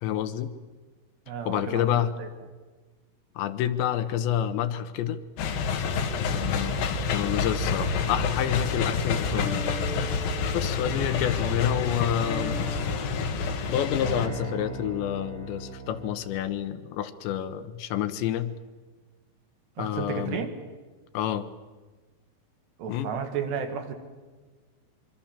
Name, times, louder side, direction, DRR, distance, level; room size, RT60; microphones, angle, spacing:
voice 1, 0.0-0.5 1.5-2.1 3.4-5.2 6.2-9.7 10.5-12.7 13.7-18.5 19.8-20.4 21.1-21.5 22.9-23.1, left 10 dB, 75° left, 10 dB, 3.2 m, -28 dB
voice 2, 1.3-2.3 19.8-20.5 22.8-23.9, right 6 dB, 70° right, 6 dB, 3.9 m, -33 dB
sound 1, 5.4-14.3, left 5 dB, 60° left, 2.9 m, -28 dB
sound 2, 9.3-16.3, right 2 dB, 15° right, 6.4 m, -39 dB
25.0 x 24.5 x 7.4 m, 1.3 s
omnidirectional pair, 5.3 m